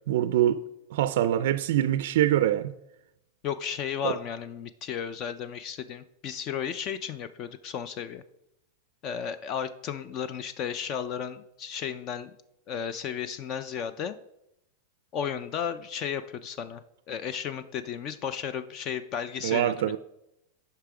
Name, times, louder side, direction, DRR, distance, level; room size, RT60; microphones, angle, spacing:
voice 1, 0.1-0.6 0.9-2.7 4.0-4.1 19.4-20.0, right 12 dB, 60° right, 0.4 m, -24 dB
voice 2, 3.4-8.2 9.0-12.3 12.7-14.2 15.1-16.8 17.1-19.7, left 8 dB, 30° left, 0.4 m, -34 dB
10.5 x 5.7 x 4.8 m
supercardioid pair, 165°, 0 cm